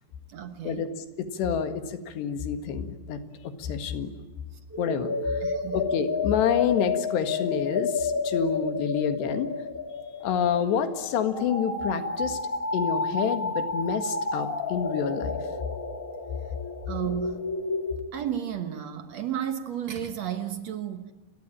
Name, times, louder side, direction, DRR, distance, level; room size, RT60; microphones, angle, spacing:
voice 1, 0.3-0.9 5.4-5.8 16.9-17.5 18.1-21.1, right 9 dB, 60° right, 9 dB, 1.9 m, -33 dB
voice 2, 1.2-4.1 4.8-5.4 5.7-9.5 10.2-12.4 12.7-15.4, left 7 dB, 90° left, 9 dB, 4.0 m, -28 dB
sound 1, 4.7-18.0, left 3 dB, 30° left, 1.9 m, -31 dB
30.0 x 22.5 x 8.8 m, 1.2 s
omnidirectional pair, 4.7 m